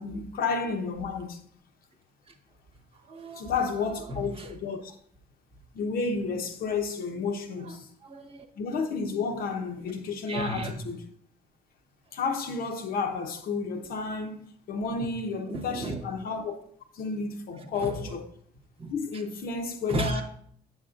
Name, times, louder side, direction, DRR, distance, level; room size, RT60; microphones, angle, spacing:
voice 1, 0.0-1.4 3.3-5.0 5.7-7.9 8.6-11.0 12.1-16.6 16.9-18.2 18.9-20.2, left 4 dB, 60° left, 0.9 m, -31 dB
voice 2, 3.0-4.5 7.6-8.5 10.3-10.8 15.5-16.0 17.7-18.1 18.8-19.2 19.9-20.2, right 2 dB, 35° right, 1.0 m, -35 dB
7.2 x 7.2 x 2.5 m
cardioid pair, 110°, 17 cm